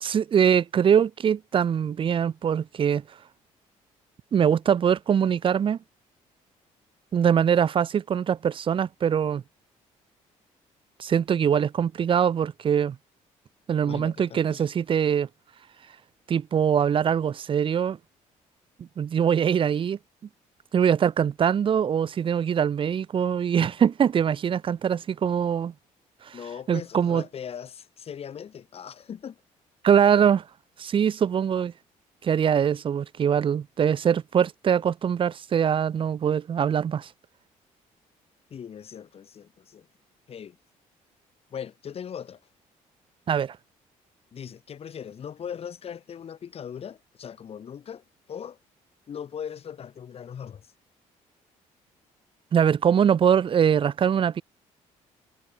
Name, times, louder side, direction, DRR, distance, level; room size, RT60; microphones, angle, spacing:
voice 1, 0.0-3.0 4.3-5.8 7.1-9.4 11.0-13.0 13.7-15.3 16.3-18.0 18.8-20.0 20.7-25.7 26.2-26.4 26.7-27.2 29.8-30.4 30.8-31.7 32.2-37.1 43.3-43.6 52.5-54.4, right 8 dB, 30° right, 0.3 m, -23 dB
voice 2, 13.8-14.6 26.3-29.4 38.5-39.9 40.3-40.6 41.5-42.4 44.3-48.0 48.3-48.6 49.1-50.7, left 8 dB, 35° left, 0.5 m, -39 dB
hypercardioid pair, 50°, 17 cm